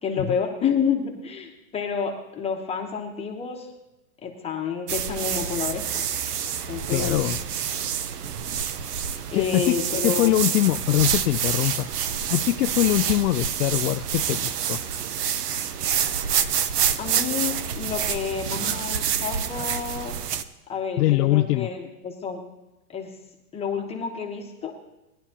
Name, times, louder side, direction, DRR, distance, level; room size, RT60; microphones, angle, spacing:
voice 1, 0.0-3.7 4.2-6.0 6.7-7.3 9.3-10.4 17.0-20.2 20.7-22.4 22.9-23.1 23.5-24.8, left 6 dB, 15° left, 0 dB, 1.1 m, -29 dB
sound 1, 4.9-20.4, right 8 dB, 80° right, 1.0 m, -27 dB
voice 2, 6.9-7.4 9.3-9.8 10.0-11.9 12.3-14.8 21.0-21.7, left 16 dB, 80° left, 8 dB, 0.6 m, -22 dB
19.5 x 11.0 x 2.9 m, 1.0 s
supercardioid pair, 150°, 46 cm